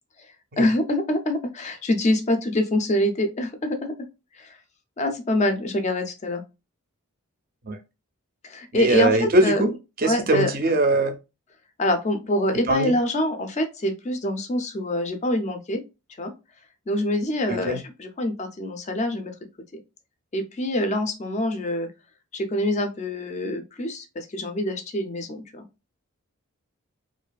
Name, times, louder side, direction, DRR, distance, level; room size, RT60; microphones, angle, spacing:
voice 1, 0.6-3.9 4.4-4.6 5.0-6.4 8.4-9.6 10.0-10.5 11.8-15.8 16.2-16.3 16.9-19.3 20.3-21.9 22.3-25.6, left 1 dB, 30° left, 0.4 m, -25 dB
voice 2, 8.7-9.7 10.0-11.2 12.7-12.9 17.5-17.8, right 2 dB, 40° right, 0.4 m, -21 dB
2.5 x 2.3 x 2.2 m
head